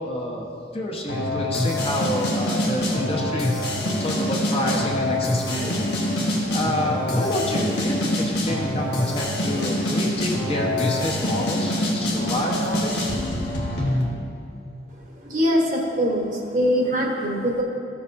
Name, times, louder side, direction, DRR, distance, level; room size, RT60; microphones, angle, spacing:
voice 1, 0.0-5.9 6.5-13.1, left 1 dB, 35° left, -2 dB, 1.1 m, -28 dB
sound 1, 1.1-14.0, left 1 dB, 70° left, 1.5 m, -25 dB
voice 2, 15.2-17.6, equal, 45° right, -1 dB, 1.2 m, -22 dB
15.0 x 7.2 x 2.7 m, 2.5 s
head